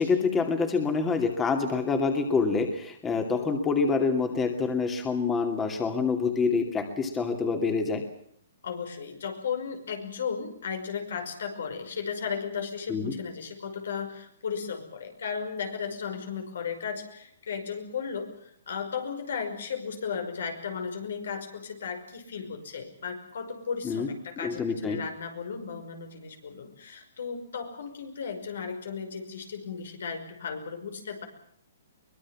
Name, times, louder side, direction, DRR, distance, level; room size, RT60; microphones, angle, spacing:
voice 1, 0.0-8.0 12.9-13.1 23.8-24.1 24.4-25.0, left 4 dB, 15° left, 5 dB, 2.5 m, -26 dB
voice 2, 8.6-31.3, left 6 dB, 75° left, 6 dB, 5.6 m, -35 dB
23.5 x 20.5 x 7.4 m, 0.67 s
hypercardioid pair, 150°, 0 cm